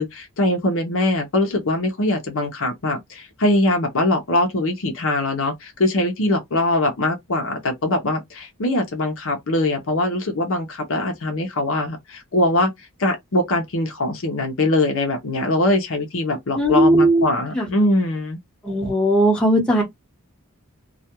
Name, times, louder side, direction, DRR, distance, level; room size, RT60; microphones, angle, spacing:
voice 1, 0.0-12.7 13.0-18.4, left 1 dB, 65° left, 0.7 m, -22 dB
voice 2, 16.5-17.3 17.5-17.7 18.6-19.8, right 1 dB, 5° left, 1.1 m, -17 dB
2.3 x 2.2 x 2.9 m
head